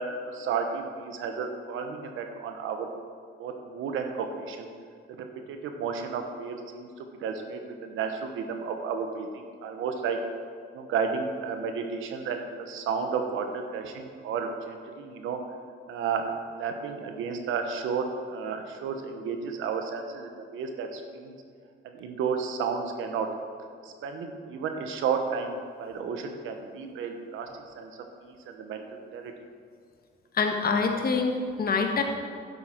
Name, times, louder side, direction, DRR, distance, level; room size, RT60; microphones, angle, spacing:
voice 1, 0.0-2.9 3.4-4.7 5.2-10.2 10.7-15.4 15.9-21.3 21.8-23.3 23.8-27.5 27.7-27.9 28.2-28.8 29.1-29.3, right 5 dB, 85° right, 5 dB, 1.1 m, -32 dB
voice 2, 30.3-32.0, left 4 dB, 50° left, 4 dB, 1.4 m, -25 dB
11.0 x 8.0 x 4.5 m, 2.1 s
cardioid pair, 90°, 20 cm